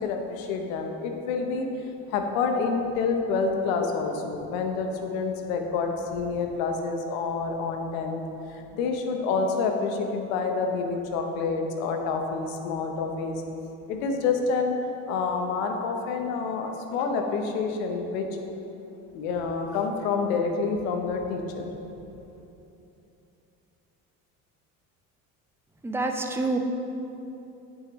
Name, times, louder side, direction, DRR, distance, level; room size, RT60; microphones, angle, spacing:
voice 1, 0.0-1.7 2.1-8.2 8.5-13.4 13.9-14.8 15.1-18.3 19.1-21.7, left 4 dB, 85° left, 4 dB, 0.9 m, -28 dB
voice 2, 25.8-26.6, right 2 dB, 5° right, 3 dB, 0.6 m, -27 dB
9.0 x 6.6 x 3.1 m, 2.9 s
supercardioid pair, 75°, 40 cm